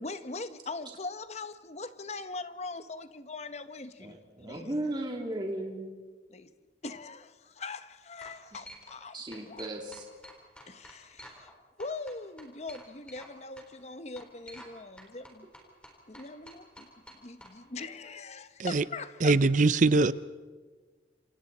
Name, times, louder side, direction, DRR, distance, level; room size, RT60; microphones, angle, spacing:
voice 1, 0.0-4.7 6.3-6.5 6.8-9.6 10.7-11.5 11.8-15.5 16.1-19.4, left 3 dB, 40° left, 1.0 m, -41 dB
voice 2, 4.0-5.9 9.1-10.0, right 1 dB, 25° right, 3.1 m, -36 dB
sound 1, 7.4-7.7 8.2-9.1 9.3-11.5 11.8-13.3 13.6-13.7 14.2-14.7 15.0-17.5, equal, 5° left, 4.0 m, -50 dB
voice 3, 19.2-20.1, right 3 dB, 45° right, 0.6 m, -22 dB
28.0 x 28.0 x 4.2 m
head